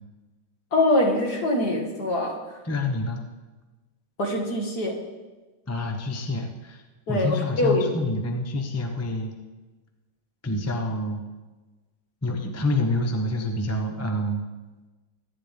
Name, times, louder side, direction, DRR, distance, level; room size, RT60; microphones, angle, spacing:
voice 1, 0.7-2.4 4.2-5.0 7.1-8.0, left 1 dB, 50° left, 0 dB, 2.4 m, -23 dB
voice 2, 2.6-3.2 5.7-6.8 7.1-9.3 10.4-11.2 12.2-14.4, left 1 dB, 15° left, 3 dB, 0.6 m, -27 dB
23.0 x 10.0 x 3.6 m, 1.2 s
omnidirectional pair, 2.3 m